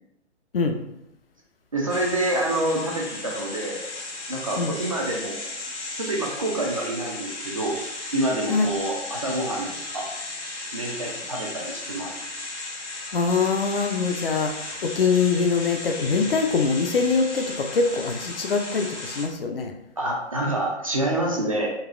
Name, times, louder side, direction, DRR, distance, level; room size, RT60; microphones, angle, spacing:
voice 1, 1.7-3.8 4.3-5.4 6.0-7.8 8.1-10.1 10.7-12.2 20.0-21.7, right 1 dB, 30° right, -1 dB, 0.4 m, -27 dB
sound 1, 1.9-19.3, left 2 dB, 75° left, 0.9 m, -35 dB
voice 2, 13.1-19.7, left 4 dB, 55° left, 5 dB, 0.5 m, -23 dB
4.0 x 2.3 x 2.3 m, 0.84 s
figure-of-eight pair, 130°, 34 cm